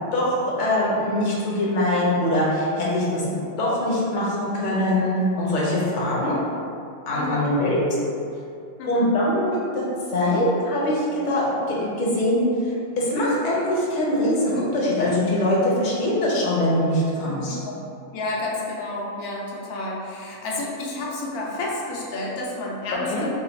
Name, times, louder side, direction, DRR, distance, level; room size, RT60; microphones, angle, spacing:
voice 1, 0.1-3.3 3.6-6.4 7.1-7.8 8.9-17.6 23.0-23.2, left 1 dB, 45° left, -5 dB, 0.7 m, -23 dB
voice 2, 7.1-7.5 8.8-9.1 17.4-17.7 18.1-23.3, left 2 dB, 85° left, -3 dB, 1.2 m, -30 dB
3.9 x 2.2 x 3.4 m, 2.5 s
omnidirectional pair, 1.5 m